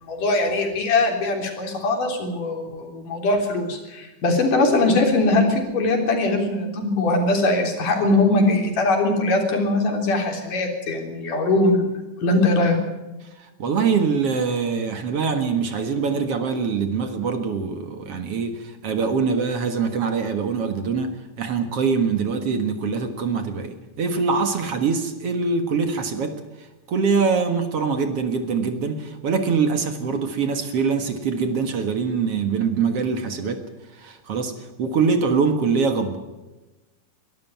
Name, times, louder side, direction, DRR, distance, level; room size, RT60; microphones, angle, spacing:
voice 1, 0.0-11.9 12.2-12.8, left 2 dB, 85° left, 3 dB, 5.1 m, -21 dB
voice 2, 13.4-36.2, right 5 dB, 55° right, 8 dB, 2.4 m, -24 dB
23.0 x 13.5 x 9.3 m, 1.1 s
omnidirectional pair, 3.6 m